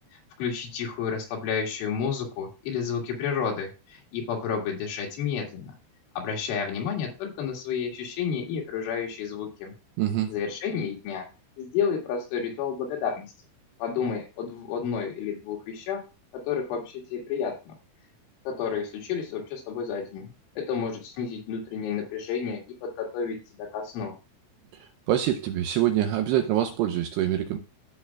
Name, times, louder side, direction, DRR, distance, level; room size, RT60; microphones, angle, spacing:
voice 1, 0.4-5.7 6.2-9.7 10.3-11.3 11.6-13.3 13.8-16.0 16.3-17.7 18.5-20.3 20.6-24.1, left 6 dB, 80° left, 4.5 m, -31 dB
voice 2, 10.0-10.3 24.7-27.6, right 12 dB, 80° right, 2.5 m, -25 dB
15.5 x 5.6 x 2.3 m
omnidirectional pair, 5.4 m